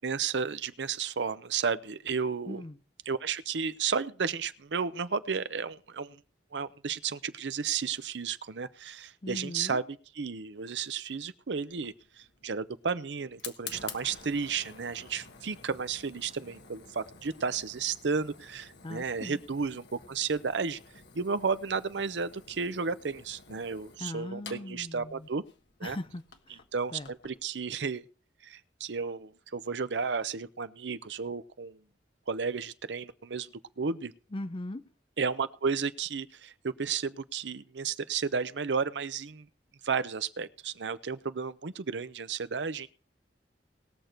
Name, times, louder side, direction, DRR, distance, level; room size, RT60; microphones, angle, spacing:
voice 1, 0.0-2.6 3.1-6.2 6.5-20.8 21.1-25.4 25.8-26.0 26.7-28.0 28.4-31.8 32.3-33.5 33.8-34.1 35.2-39.4 39.8-42.9, right 5 dB, 85° right, 0.7 m, -33 dB
voice 2, 2.5-2.8 9.2-9.8 18.8-19.4 24.0-25.3 25.8-26.6 26.9-27.1 34.3-34.8, left 1 dB, 30° left, 0.6 m, -39 dB
Fire, 11.7-27.4, left 6 dB, 75° left, 1.4 m, -50 dB
20.0 x 6.7 x 4.5 m
head